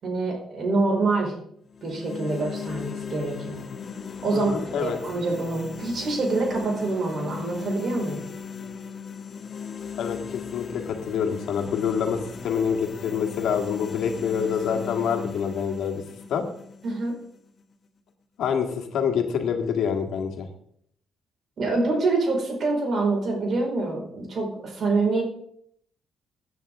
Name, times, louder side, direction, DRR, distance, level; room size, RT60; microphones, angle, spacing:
voice 1, 0.0-1.3 1.8-3.6 4.2-8.2 16.8-17.1 21.6-25.2, right 3 dB, 55° right, 0 dB, 4.9 m, -26 dB
sound 1, 1.7-17.7, left 6 dB, 45° left, 1.3 m, -38 dB
voice 2, 4.3-5.0 10.0-12.2 12.4-16.0 16.3-16.4 18.4-20.5, left 7 dB, 75° left, 4 dB, 1.9 m, -26 dB
16.5 x 9.2 x 3.7 m, 0.68 s
cardioid pair, 90°, 0 cm